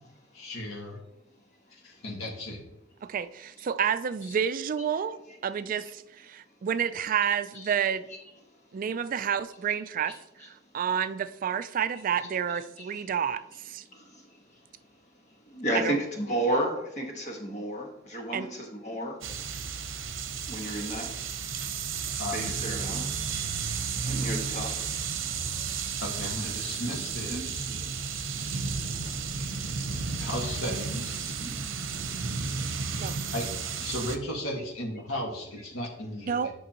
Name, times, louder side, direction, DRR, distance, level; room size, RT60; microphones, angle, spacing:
voice 1, 0.3-1.0 1.8-2.6 22.2-22.5 26.0-27.7 30.2-31.4 33.3-33.5 33.8-36.5, left 1 dB, 90° left, 1 dB, 1.6 m, -35 dB
voice 2, 3.0-5.2 5.4-8.0 8.7-10.2 10.5-13.8 15.7-16.0 18.3-18.5 33.0-33.2 36.3-36.5, right 8 dB, 40° right, 13 dB, 0.3 m, -29 dB
voice 3, 12.5-13.0 13.9-14.4 15.5-19.2 20.4-21.1 22.1-23.1 24.1-25.0 26.8-27.0 27.3-27.9 29.4-29.5 31.3-31.5, right 1 dB, 35° left, 0 dB, 1.3 m, -33 dB
sound 1, 19.2-34.2, right 5 dB, 70° right, 0.8 m, -33 dB
Fire, 28.4-30.8, equal, 55° left, 1.0 m, -49 dB
9.3 x 6.1 x 2.9 m, 0.86 s
head